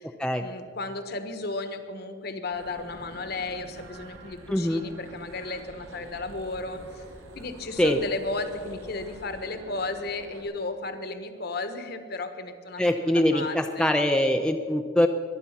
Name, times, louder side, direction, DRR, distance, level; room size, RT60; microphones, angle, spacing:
voice 1, 0.4-7.0 7.3-13.9, left 3 dB, 50° left, 8 dB, 1.2 m, -34 dB
sound 1, 2.5-10.4, right 1 dB, 85° right, 2.4 m, -47 dB
voice 2, 4.5-4.8 7.8-8.0 12.8-15.1, left 1 dB, 5° left, 4 dB, 0.5 m, -23 dB
22.5 x 9.6 x 5.9 m, 2.2 s
head